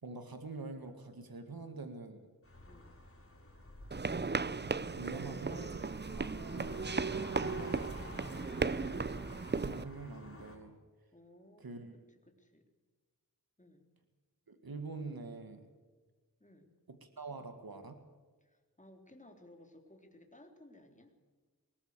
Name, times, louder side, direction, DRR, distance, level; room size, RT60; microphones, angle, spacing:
voice 1, 0.0-2.3 4.6-7.8 9.6-10.8 11.6-11.9 14.5-15.7 16.9-18.0, right 3 dB, 90° right, 7 dB, 2.0 m, -45 dB
sound 1, 2.4-10.6, left 1 dB, 40° left, 6.6 m, -50 dB
voice 2, 2.6-3.0 11.1-11.6 11.9-12.7 13.6-13.9 16.4-16.7 18.4-21.1, left 1 dB, 20° left, 4 dB, 3.6 m, -59 dB
sound 2, 3.9-9.8, right 4 dB, 30° right, 0.6 m, -36 dB
21.5 x 18.5 x 6.9 m, 1.4 s
wide cardioid pair, 50°, 35 cm